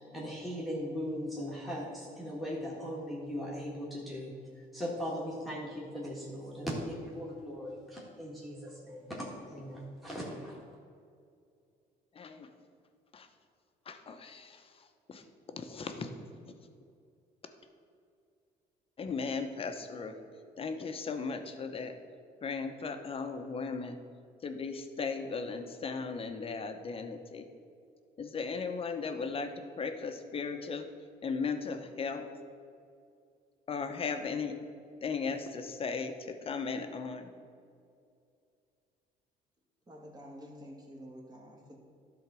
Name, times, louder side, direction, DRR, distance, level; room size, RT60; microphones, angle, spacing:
voice 1, 0.1-4.3 4.7-10.6, equal, ahead, -6 dB, 1.8 m, -39 dB
voice 2, 12.2-12.5 13.1-13.3 13.9-14.6 15.1-15.2 15.5-16.1 19.0-20.1 20.6-21.9 22.4-24.0 24.4-27.4 28.2-30.9 31.2-32.3 33.7-34.6 35.0-37.3, left 5 dB, 35° left, 7 dB, 0.9 m, -36 dB
voice 3, 39.9-41.8, equal, 25° right, -1 dB, 1.9 m, -49 dB
11.5 x 4.0 x 6.1 m, 2.4 s
cardioid pair, 110°, 17 cm